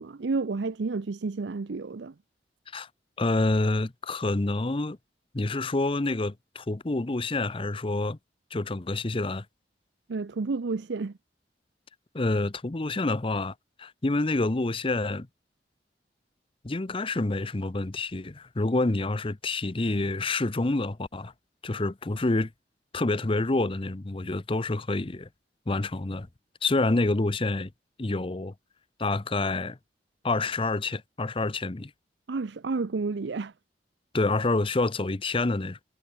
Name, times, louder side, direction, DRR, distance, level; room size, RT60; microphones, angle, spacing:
voice 1, 0.0-2.1 10.1-11.1 32.3-33.5, right 4 dB, 80° right, 0.6 m, -30 dB
voice 2, 3.2-5.0 5.3-8.2 8.5-9.5 12.1-15.3 16.6-21.3 21.6-22.5 22.9-25.3 25.7-26.3 26.6-27.7 28.0-28.5 29.0-29.8 30.2-31.9 34.1-35.8, left 2 dB, 30° left, 0.7 m, -27 dB
head